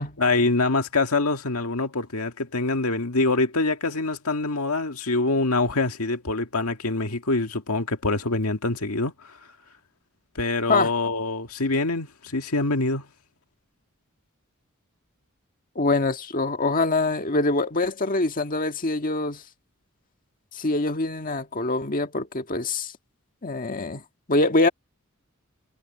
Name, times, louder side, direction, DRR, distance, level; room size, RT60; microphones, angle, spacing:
voice 1, 0.2-9.1 10.4-13.1, left 3 dB, 85° left, 1.9 m, -25 dB
voice 2, 15.7-19.4 20.5-22.9 23.4-24.0 24.3-24.7, left 2 dB, 40° left, 1.7 m, -24 dB
head